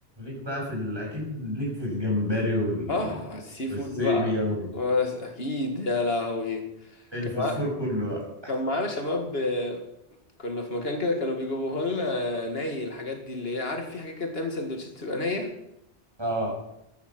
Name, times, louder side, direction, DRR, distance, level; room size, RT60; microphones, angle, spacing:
voice 1, 0.2-3.2 3.7-4.7 7.1-8.2 16.2-16.5, left 1 dB, 25° right, -2 dB, 6.5 m, -29 dB
voice 2, 2.9-4.3 4.7-7.0 7.4-7.5 8.5-9.8 10.4-15.5, left 2 dB, 75° left, 4 dB, 2.2 m, -29 dB
13.5 x 12.0 x 6.0 m, 0.81 s
omnidirectional pair, 1.0 m